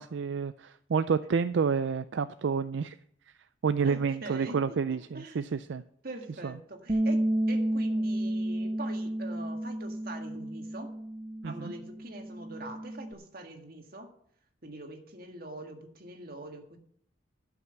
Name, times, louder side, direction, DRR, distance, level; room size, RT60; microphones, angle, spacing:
voice 1, 0.0-3.0 3.6-5.8 6.4-6.5 11.4-11.7, right 5 dB, 70° right, 12 dB, 0.4 m, -29 dB
voice 2, 3.8-5.4 6.0-10.9 11.4-14.1 14.6-16.8, right 2 dB, 50° right, 4 dB, 1.8 m, -43 dB
Bass guitar, 6.9-13.1, right 1 dB, 25° right, 0.6 m, -31 dB
12.5 x 5.9 x 8.0 m, 0.67 s
head